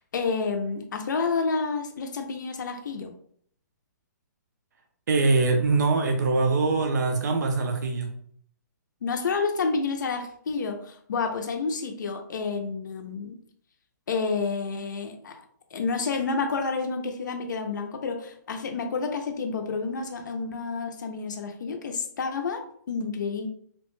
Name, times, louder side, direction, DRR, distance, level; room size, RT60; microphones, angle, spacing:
voice 1, 0.1-3.1 9.0-13.4 14.1-15.4 15.7-23.5, left 4 dB, 85° left, 5 dB, 0.4 m, -29 dB
voice 2, 5.1-8.1, right 3 dB, 70° right, 4 dB, 0.4 m, -23 dB
2.8 x 2.1 x 3.0 m, 0.63 s
hypercardioid pair, 175°, 10 cm